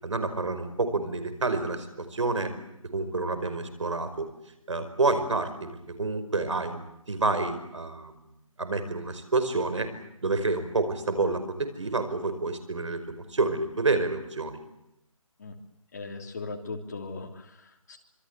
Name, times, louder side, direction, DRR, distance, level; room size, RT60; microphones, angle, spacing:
voice 1, 0.0-2.5 2.9-4.3 4.7-5.7 6.0-8.1 8.6-9.9 10.2-14.6, right 3 dB, 60° right, 10 dB, 5.1 m, -28 dB
voice 2, 15.9-18.0, left 3 dB, 30° left, 3 dB, 3.1 m, -38 dB
26.5 x 23.5 x 8.2 m, 0.83 s
figure-of-eight pair, 170°, 18 cm